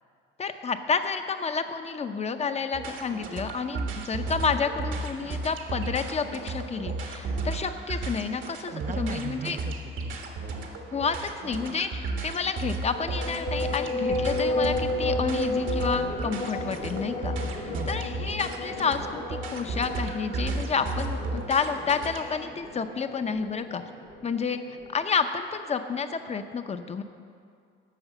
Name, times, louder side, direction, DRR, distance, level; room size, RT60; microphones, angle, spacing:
voice 1, 0.4-9.6 10.9-23.8 24.2-24.6 24.9-27.0, left 5 dB, 35° left, 9 dB, 0.7 m, -30 dB
sound 1, 2.7-22.4, right 2 dB, 75° right, 1.5 m, -34 dB
voice 2, 8.7-10.6 17.7-18.2, right 7 dB, 40° right, 7 dB, 0.5 m, -40 dB
sound 2, 13.0-24.9, left 2 dB, 90° left, 1.6 m, -33 dB
10.0 x 6.3 x 7.5 m, 2.3 s
cardioid pair, 90°, 20 cm